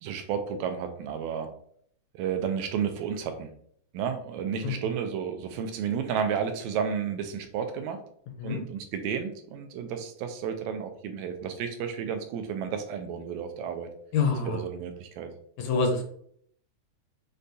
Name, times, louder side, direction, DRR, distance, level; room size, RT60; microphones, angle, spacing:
voice 1, 0.0-1.5 2.1-3.5 3.9-8.0 8.4-13.9 14.5-15.3, right 7 dB, 80° right, 7 dB, 1.8 m, -32 dB
voice 2, 14.1-14.6 15.6-16.0, left 4 dB, 80° left, 4 dB, 1.7 m, -26 dB
6.4 x 2.2 x 2.6 m, 0.63 s
omnidirectional pair, 3.3 m